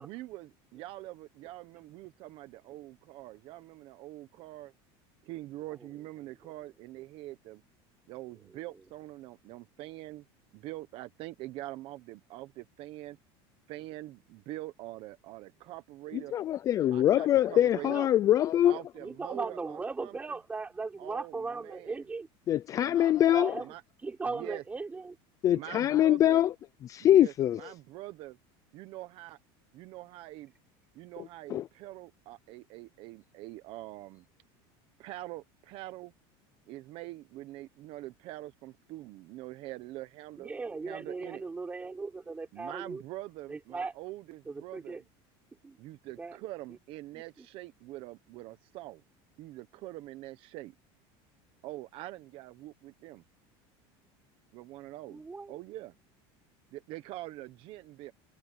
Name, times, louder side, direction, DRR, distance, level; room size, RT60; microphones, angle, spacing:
voice 1, 0.0-4.7 5.2-7.6 8.1-10.2 10.5-13.2 13.7-16.3 16.9-18.0 18.6-20.1 21.0-22.0 22.8-23.8 24.2-24.6 25.5-26.4 27.0-28.4 28.7-29.4 29.7-30.5 30.9-34.2 35.0-36.1 36.7-40.5 40.8-41.4 42.5-45.0 45.8-49.0 49.4-50.7 51.6-53.2 54.5-55.9 56.7-58.1, right 17 dB, 45° right, 1.1 m, -44 dB
voice 2, 16.1-18.8 22.5-23.6 25.4-26.5 26.8-27.7 31.5-31.7, left 12 dB, 25° left, 0.5 m, -24 dB
voice 3, 19.0-22.3 23.3-23.8 24.0-25.2 40.4-43.0 43.5-43.9 44.5-45.0 45.6-45.8 46.2-46.4 46.7-46.8 47.1-47.5 55.1-55.5, right 4 dB, 10° right, 4.2 m, -38 dB
cardioid pair, 165°, 13 cm